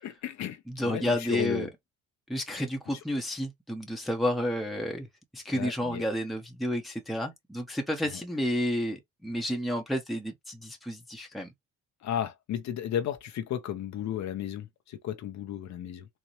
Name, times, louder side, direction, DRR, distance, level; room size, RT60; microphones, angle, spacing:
voice 1, 0.0-1.7 5.5-6.0 8.1-8.2 12.0-16.1, left 10 dB, 65° left, 0.7 m, -34 dB
voice 2, 0.7-1.7 2.3-5.1 5.3-11.5, equal, ahead, 0.8 m, -31 dB
4.1 x 2.1 x 3.0 m
cardioid pair, 90°, 30 cm